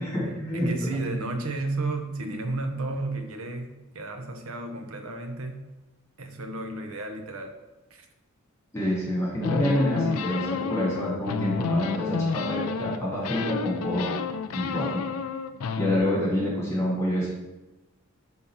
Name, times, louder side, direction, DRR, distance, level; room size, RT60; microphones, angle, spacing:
voice 1, 0.0-1.2 8.7-14.1 14.5-15.0 15.8-17.3, equal, 15° left, -6 dB, 2.0 m, -27 dB
voice 2, 0.5-5.6 6.2-7.6 7.9-8.1, right 2 dB, 75° right, 5 dB, 0.8 m, -32 dB
sound 1, 9.4-13.0 13.2-16.0, left 5 dB, 90° left, 0.4 m, -30 dB
5.5 x 3.8 x 5.7 m, 1.1 s
head